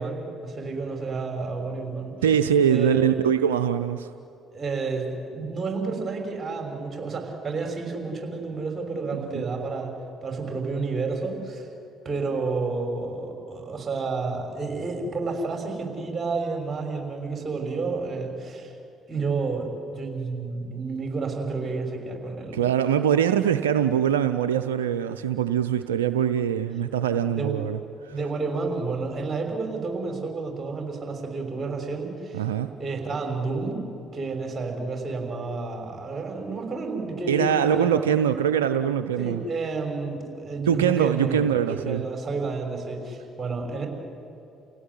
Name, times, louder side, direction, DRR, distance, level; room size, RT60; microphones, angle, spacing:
voice 1, 0.0-2.2 2.7-3.0 4.5-9.9 10.2-11.7 12.0-18.7 19.1-22.6 27.3-27.5 28.1-32.5 32.8-33.8 34.1-38.0 39.2-43.9, right 3 dB, 30° right, 3 dB, 6.0 m, -30 dB
voice 2, 2.2-4.1 9.3-9.4 22.5-28.2 32.3-32.7 37.3-39.4 40.7-42.0, right 9 dB, 85° right, 10 dB, 0.5 m, -23 dB
29.5 x 17.0 x 9.9 m, 2.7 s
hypercardioid pair, 50°, 0 cm